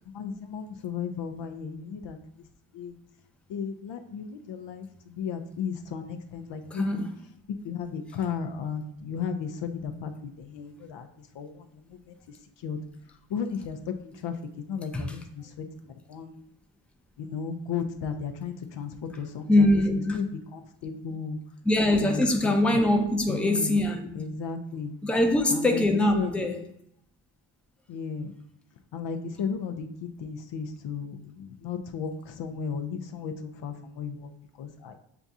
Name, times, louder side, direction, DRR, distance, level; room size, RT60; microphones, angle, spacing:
voice 1, 0.1-2.2 2.7-3.0 3.5-7.1 7.6-12.1 12.6-12.8 13.3-13.8 14.0-14.3 14.7-15.6 16.1-16.5 17.2-19.7 19.9-20.3 20.5-21.4 21.9-22.6 23.3-23.9 24.2-25.0 25.5-25.8 26.1-26.3 27.9-28.3 28.9-34.3 34.6-34.9, left 6 dB, 65° left, 0.6 m, -35 dB
voice 2, 6.7-7.2 14.9-15.2 19.5-20.2 21.6-24.2 25.0-26.6, left 1 dB, ahead, 0.6 m, -23 dB
6.8 x 2.3 x 2.6 m
supercardioid pair, 50°, 48 cm